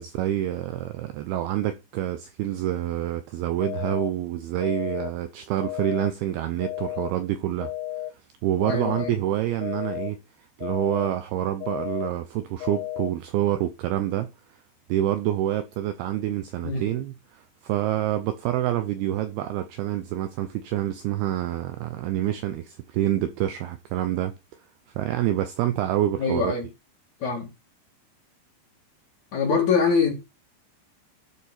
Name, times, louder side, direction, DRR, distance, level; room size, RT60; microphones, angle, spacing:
voice 1, 0.0-7.7 8.4-10.2 10.6-14.3 14.9-24.3 25.0-26.5, right 13 dB, 85° right, 2.2 m, -27 dB
sound 1, 3.6-4.1 4.6-5.1 5.6-6.1 6.6-7.1 7.6-8.1 8.6-9.1 9.6-10.1 10.6-11.1 11.6-12.1 12.6-13.1, left 14 dB, 85° left, 3.3 m, -33 dB
voice 2, 8.7-9.2 16.6-16.9 26.2-26.7 27.2-27.5 29.3-30.1, left 5 dB, 55° left, 2.5 m, -24 dB
12.5 x 4.8 x 4.4 m
omnidirectional pair, 5.3 m